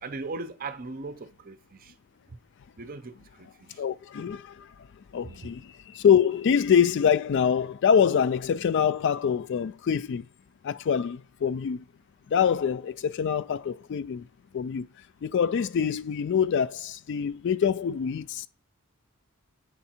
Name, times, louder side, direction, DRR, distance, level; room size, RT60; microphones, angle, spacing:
voice 1, 0.0-1.9 2.8-3.8 5.2-5.5, right 3 dB, 40° right, 0.6 m, -39 dB
voice 2, 3.8-4.7 5.1-10.2 10.6-11.8 12.3-14.2 14.5-14.9 15.2-18.5, left 7 dB, 55° left, 0.3 m, -25 dB
8.1 x 3.5 x 4.3 m
head